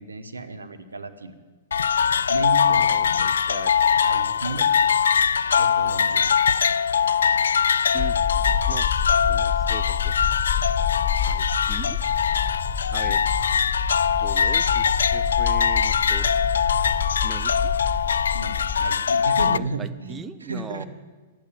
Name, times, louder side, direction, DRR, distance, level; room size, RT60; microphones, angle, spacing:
voice 1, 0.0-1.3 2.3-2.9 4.0-4.7 5.6-6.2 13.0-13.2 18.3-20.9, right 3 dB, 85° right, 7 dB, 1.2 m, -33 dB
sound 1, 1.7-19.6, left 7 dB, 70° left, 0.3 m, -22 dB
voice 2, 2.9-3.7 4.5-4.9 7.9-8.2 8.7-9.0 9.3-10.1 11.3-12.0 12.9-13.2 14.1-16.3 17.2-17.7 19.4-20.9, right 6 dB, 20° right, 12 dB, 0.7 m, -40 dB
sound 2, 8.0-18.9, left 7 dB, 20° left, 1.0 m, -28 dB
12.0 x 9.0 x 9.3 m, 1.3 s
figure-of-eight pair, 105°, 0 cm